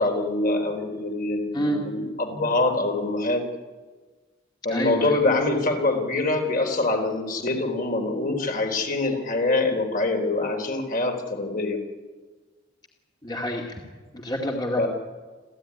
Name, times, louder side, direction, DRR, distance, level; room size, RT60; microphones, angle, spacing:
voice 1, 0.0-3.5 4.7-11.8 14.8-14.9, left 2 dB, 45° left, 3 dB, 3.8 m, -24 dB
voice 2, 4.7-5.2 13.2-13.8 14.1-14.9, equal, 20° left, 0 dB, 2.2 m, -28 dB
28.0 x 15.0 x 9.8 m, 1.4 s
head